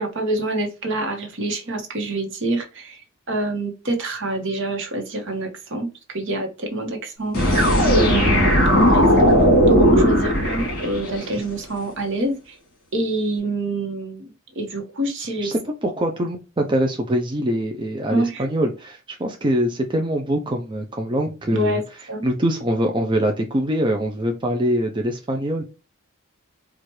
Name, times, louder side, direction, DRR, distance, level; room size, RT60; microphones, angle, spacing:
voice 1, 0.0-3.0 3.3-9.3 9.7-12.6 12.9-15.5 18.1-18.5 21.5-21.8 22.1-22.2, right 2 dB, 60° right, 3 dB, 1.1 m, -26 dB
sound 1, 7.3-11.3, equal, 50° left, 2.1 m, -16 dB
voice 2, 15.4-21.8 22.2-25.6, right 1 dB, 25° right, 3 dB, 0.5 m, -23 dB
4.5 x 2.4 x 3.0 m, 0.31 s
head